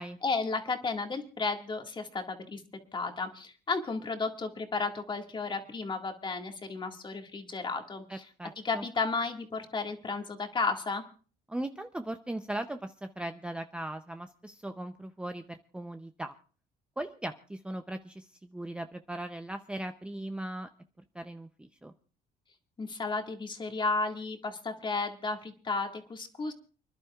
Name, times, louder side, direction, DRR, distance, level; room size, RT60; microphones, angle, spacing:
voice 1, 0.2-2.6 2.9-8.2 8.6-11.0 22.8-26.5, left 4 dB, 30° left, 4 dB, 1.9 m, -33 dB
voice 2, 8.1-8.8 11.5-16.4 17.0-20.7 21.1-21.9, right 1 dB, 5° right, 7 dB, 0.6 m, -38 dB
29.5 x 11.0 x 2.4 m, 0.39 s
cardioid pair, 110°, 17 cm